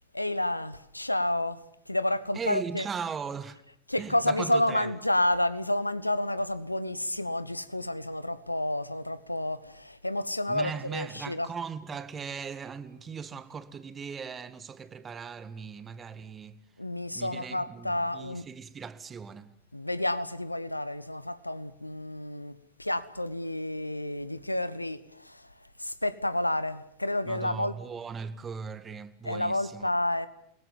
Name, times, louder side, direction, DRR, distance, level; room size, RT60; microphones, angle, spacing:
voice 1, 0.1-2.9 3.9-11.5 16.8-18.4 19.7-27.7 29.2-30.3, left 1 dB, 85° left, 1.3 m, -30 dB
voice 2, 2.3-3.6 4.0-4.9 10.5-16.6 17.1-19.6 27.3-29.9, right 6 dB, 20° right, 1.8 m, -38 dB
29.5 x 20.5 x 7.3 m
figure-of-eight pair, 90°, 0 cm